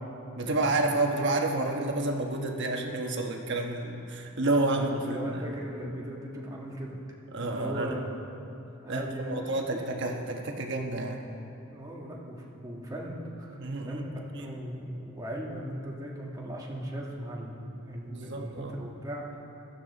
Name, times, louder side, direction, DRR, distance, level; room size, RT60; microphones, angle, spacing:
voice 1, 0.3-5.5 7.3-8.0 8.9-11.2 13.6-14.0 14.3-14.5 18.0-18.8, right 2 dB, 55° right, 2 dB, 1.2 m, -30 dB
voice 2, 4.7-7.0 7.4-8.1 8.8-9.8 11.7-13.6 13.9-19.3, equal, 15° right, -3 dB, 1.5 m, -38 dB
15.5 x 12.0 x 4.1 m, 2.8 s
head